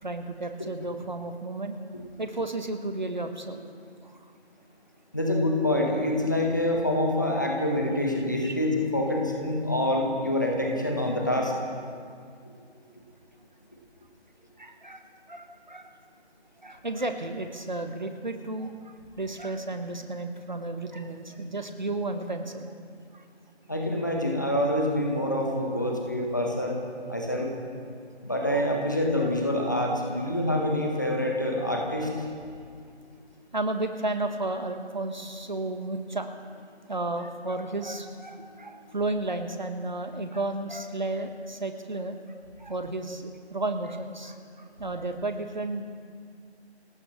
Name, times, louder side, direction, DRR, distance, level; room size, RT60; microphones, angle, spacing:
voice 1, 0.0-1.8 2.2-3.6 4.0-4.2 8.4-8.5 9.0-9.2 14.6-15.9 16.6-22.7 23.1-23.2 28.5-28.6 29.6-29.7 33.5-36.3 36.9-42.2 42.6-45.8, right 2 dB, 45° right, 7 dB, 1.2 m, -33 dB
voice 2, 5.1-11.5 23.7-26.8 27.1-27.5 28.2-32.1, left 1 dB, 15° left, 0 dB, 1.2 m, -26 dB
29.5 x 15.0 x 3.2 m, 2.2 s
figure-of-eight pair, 175°, 34 cm